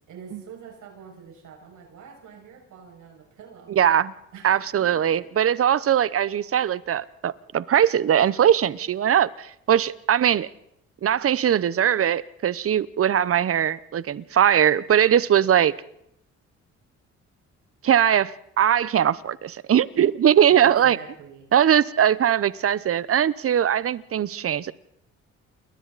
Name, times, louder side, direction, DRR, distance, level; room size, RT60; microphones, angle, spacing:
voice 1, 0.1-3.8 4.3-5.2 20.5-21.5, right 6 dB, 80° right, 6.4 m, -45 dB
voice 2, 3.7-4.1 4.4-10.5 11.0-15.7 17.8-21.0 21.5-24.7, right 9 dB, 50° right, 0.9 m, -20 dB
29.5 x 21.5 x 4.1 m
cardioid pair, 90°, 30 cm